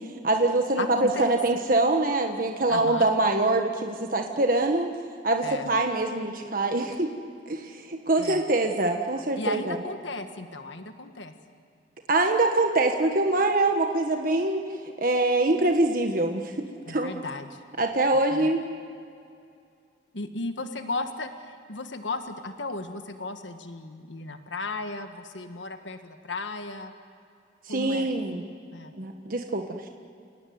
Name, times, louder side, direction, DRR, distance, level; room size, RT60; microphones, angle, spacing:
voice 1, 0.2-4.9 5.2-7.1 7.5-9.8 12.1-17.1 17.8-18.7 27.6-28.4 29.0-29.9, right 2 dB, 45° right, 4 dB, 1.4 m, -24 dB
voice 2, 0.8-1.3 2.7-3.1 5.4-5.7 8.2-8.4 9.4-11.3 16.9-17.6 18.3-18.5 20.1-26.9 27.7-28.1 28.3-28.4 28.7-28.9, left 3 dB, 80° left, 7 dB, 1.5 m, -35 dB
29.5 x 18.0 x 9.5 m, 2.4 s
head